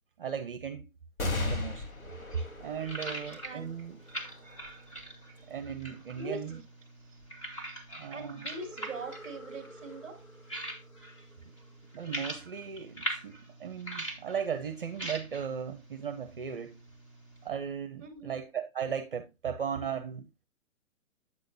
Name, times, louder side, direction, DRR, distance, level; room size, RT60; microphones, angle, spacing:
voice 1, 0.2-0.9 1.3-1.9 2.6-4.0 5.4-6.5 7.9-8.5 11.4-11.5 11.9-16.8 17.4-20.3, right 7 dB, 40° right, 0.6 m, -37 dB
sound 1, 1.2-8.1 8.7-8.8 9.9-10.5, left 2 dB, 85° left, 3.2 m, -39 dB
sound 2, 1.8-17.5, right 1 dB, 25° left, 1.3 m, -43 dB
sound 3, 1.9-4.9 8.5-12.2, right 1 dB, 45° left, 2.1 m, -52 dB
voice 2, 3.4-3.7 6.1-6.6 7.1-7.2 8.1-10.2 18.0-18.3, right 3 dB, ahead, 1.5 m, -42 dB
8.6 x 8.4 x 2.5 m
hypercardioid pair, 175°, 41 cm